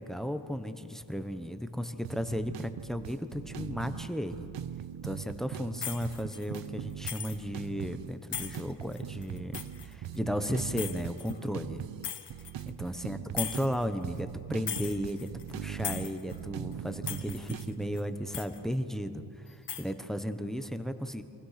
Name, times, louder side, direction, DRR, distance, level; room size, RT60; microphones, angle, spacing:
voice 1, 0.0-4.5 5.0-11.8 12.6-19.2 19.5-21.2, equal, ahead, 9 dB, 1.0 m, -35 dB
sound 1, 2.0-18.0, right 10 dB, 85° right, 0.8 m, -41 dB
sound 2, 5.8-6.7 7.1-7.4 8.3-10.2 10.8-11.4 12.0-12.7 13.4-13.8 14.2-14.3 14.7-15.6 15.8-16.4 16.7-16.8 17.1-17.7 18.0-18.1 18.3-18.6 19.5-19.9, left 8 dB, 70° left, 1.6 m, -38 dB
30.0 x 24.5 x 5.9 m, 2.4 s
wide cardioid pair, 150°, 42 cm